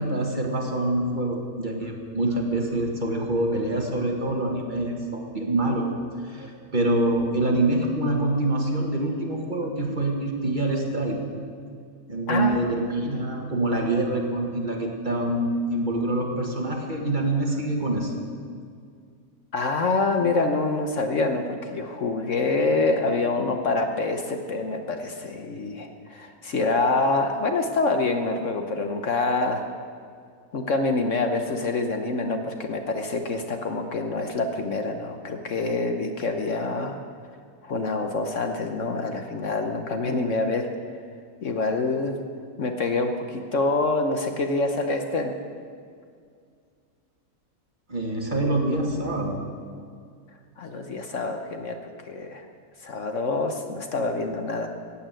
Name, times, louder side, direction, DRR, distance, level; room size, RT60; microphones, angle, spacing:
voice 1, 0.0-5.9 6.2-11.2 12.1-18.1 47.9-49.4, right 1 dB, 30° right, 1 dB, 1.8 m, -25 dB
voice 2, 12.3-12.7 19.5-29.7 30.5-37.0 37.6-40.6 41.4-42.2 42.6-45.3 50.6-52.4 52.8-54.7, left 3 dB, 55° left, 5 dB, 1.3 m, -26 dB
15.5 x 8.7 x 9.0 m, 2.2 s
omnidirectional pair, 1.6 m